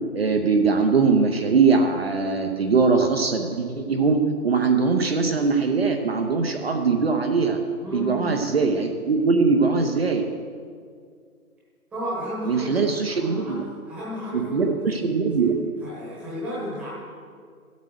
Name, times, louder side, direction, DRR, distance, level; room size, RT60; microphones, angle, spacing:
voice 1, 0.1-7.6 7.9-10.3 12.5-13.6 14.3-15.5, right 4 dB, 40° right, 4 dB, 0.8 m, -21 dB
voice 2, 7.8-8.4 11.9-16.9, equal, 5° right, -8 dB, 1.2 m, -34 dB
13.0 x 8.2 x 6.4 m, 2.1 s
hypercardioid pair, 165°, 44 cm